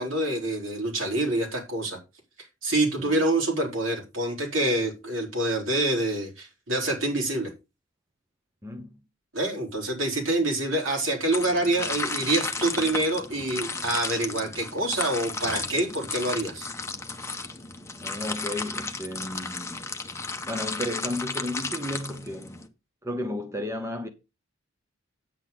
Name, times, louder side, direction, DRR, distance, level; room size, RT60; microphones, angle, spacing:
voice 1, 0.0-2.0 2.6-7.5 9.3-16.7, right 1 dB, 70° right, 3.9 m, -26 dB
voice 2, 8.6-9.0 18.0-19.8 20.5-22.6 23.0-24.1, left 1 dB, 15° right, 0.9 m, -33 dB
sound 1, 11.3-22.7, left 3 dB, 15° left, 1.0 m, -34 dB
8.9 x 8.3 x 3.9 m
head